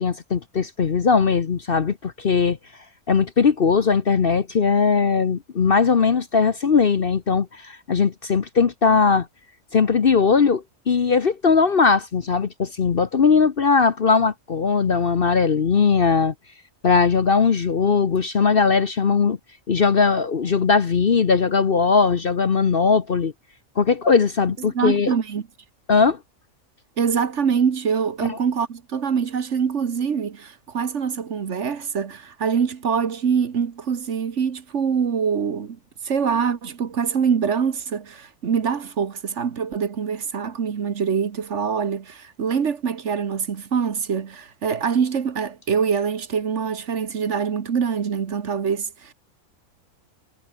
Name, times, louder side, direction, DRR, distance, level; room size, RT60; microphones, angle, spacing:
voice 1, 0.0-2.6 3.1-9.3 9.7-16.3 16.8-19.4 19.7-23.3 23.8-25.1 25.9-26.2, left 5 dB, 45° left, 1.0 m, -19 dB
voice 2, 24.6-25.4 27.0-35.8 36.0-49.1, right 6 dB, 55° right, 1.4 m, -24 dB
omnidirectional pair, 1.6 m